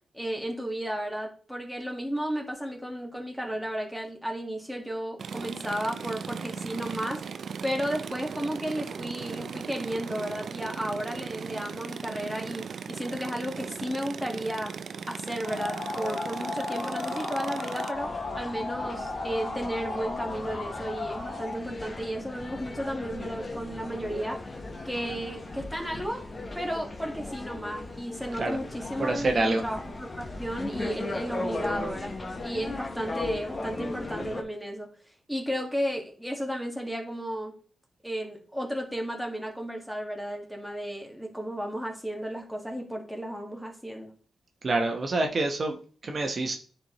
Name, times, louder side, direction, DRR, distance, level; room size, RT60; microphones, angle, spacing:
voice 1, 0.1-7.2 7.6-14.7 15.1-24.4 24.8-26.3 26.5-32.1 32.4-34.9 35.3-37.5 38.0-44.1, equal, ahead, 2 dB, 1.6 m, -33 dB
sound 1, 5.2-17.9, right 6 dB, 65° right, 0.4 m, -38 dB
sound 2, 15.4-21.6, left 3 dB, 50° left, 1.9 m, -34 dB
sound 3, 17.9-34.4, left 2 dB, 35° left, 1.0 m, -37 dB
voice 2, 29.0-29.6 44.6-46.6, right 2 dB, 45° right, 3 dB, 1.0 m, -27 dB
9.9 x 4.3 x 3.0 m, 0.42 s
cardioid pair, 85°, 0 cm